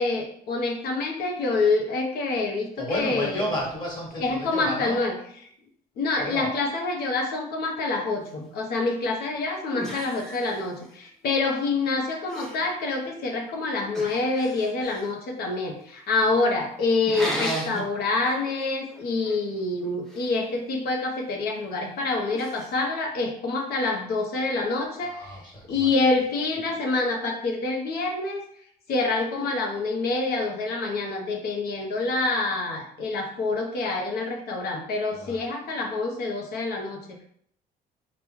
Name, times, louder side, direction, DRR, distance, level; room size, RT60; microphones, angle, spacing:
voice 1, 0.0-3.3 4.2-5.1 6.0-25.2 25.7-28.4 28.9-37.2, left 3 dB, 65° left, 1 dB, 0.9 m, -26 dB
voice 2, 2.8-5.1 6.2-6.5 25.0-25.9 26.7-26.8 35.1-35.4, left 1 dB, 25° left, -3 dB, 1.7 m, -32 dB
sound 1, 9.1-9.2 9.7-11.1 11.4-11.9 12.1-12.7 13.9-15.2 17.1-17.9 18.4-18.6 18.9-20.3 22.3-22.7, right 1 dB, 5° left, 0.8 m, -35 dB
3.5 x 2.5 x 4.5 m, 0.65 s
cardioid pair, 110°, 17 cm